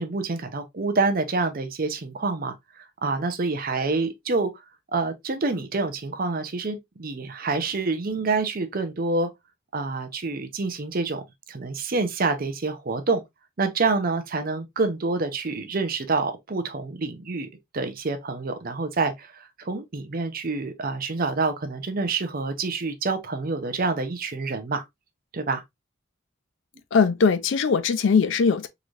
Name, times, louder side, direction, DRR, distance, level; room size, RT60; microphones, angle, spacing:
voice 1, 0.0-4.5 4.9-9.3 9.7-11.2 11.5-13.2 13.6-24.8 25.3-25.6, right 3 dB, 45° right, 0.6 m, -27 dB
voice 2, 26.9-28.7, left 5 dB, 60° left, 0.4 m, -20 dB
3.8 x 3.1 x 2.5 m
head